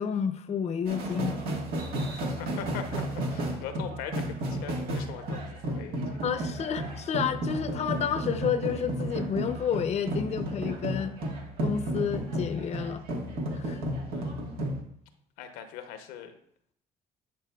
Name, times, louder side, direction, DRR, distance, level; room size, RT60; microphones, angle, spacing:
voice 1, 0.0-1.4 6.2-11.2 11.6-13.0 13.5-13.8, left 7 dB, 45° left, 9 dB, 0.6 m, -30 dB
sound 1, 0.9-14.8, right 1 dB, 75° right, 1.5 m, -33 dB
voice 2, 2.1-3.0 3.3-6.5 14.1-14.3 15.4-16.3, left 8 dB, 90° left, 7 dB, 0.8 m, -41 dB
10.5 x 4.6 x 2.3 m, 0.67 s
supercardioid pair, 75°, 15 cm